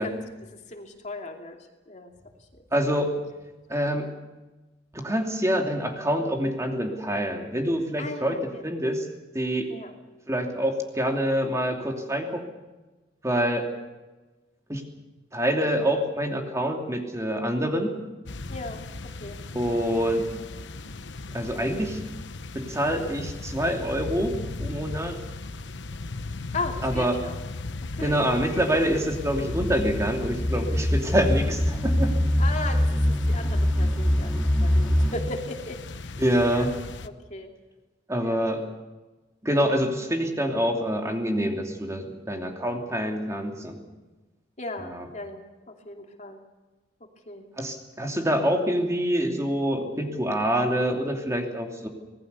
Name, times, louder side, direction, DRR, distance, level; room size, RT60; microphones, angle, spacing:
voice 1, 0.0-1.6 1.9-2.1 2.5-3.2 3.8-4.0 8.0-8.6 9.7-9.9 18.5-18.8 19.2-19.4 26.5-27.4 27.9-28.2 32.4-36.1 36.4-36.7 37.0-37.5 38.2-38.5 44.6-46.4 47.0-47.5, left 2 dB, 40° left, 3 dB, 2.7 m, -37 dB
voice 2, 2.7-3.1 3.7-4.0 4.9-8.4 8.6-9.0 9.3-9.7 10.3-12.4 13.2-13.7 14.7-14.8 15.3-18.0 19.5-20.3 21.3-22.0 22.5-25.2 26.8-27.2 28.0-32.1 36.2-36.7 38.1-38.6 39.4-43.8 44.9-45.0 47.6-51.9, equal, 15° right, 2 dB, 2.8 m, -26 dB
sound 1, 18.3-37.1, left 2 dB, 85° left, 1.0 m, -37 dB
sound 2, 28.9-35.2, equal, ahead, 2.6 m, -24 dB
25.5 x 19.5 x 6.9 m, 1.2 s
head